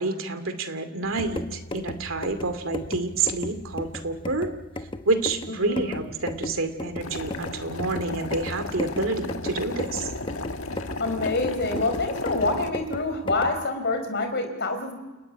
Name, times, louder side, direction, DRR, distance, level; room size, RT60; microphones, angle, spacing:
voice 1, 0.0-4.5 5.1-10.1, right 3 dB, 75° right, 8 dB, 2.4 m, -28 dB
sound 1, 1.0-13.7, left 1 dB, 25° left, 1.0 m, -36 dB
voice 2, 5.5-6.0 10.6-14.9, left 2 dB, 55° left, 6 dB, 4.3 m, -27 dB
Boiling, 7.0-12.7, left 2 dB, 90° left, 1.4 m, -35 dB
29.0 x 16.5 x 9.9 m, 1.3 s
head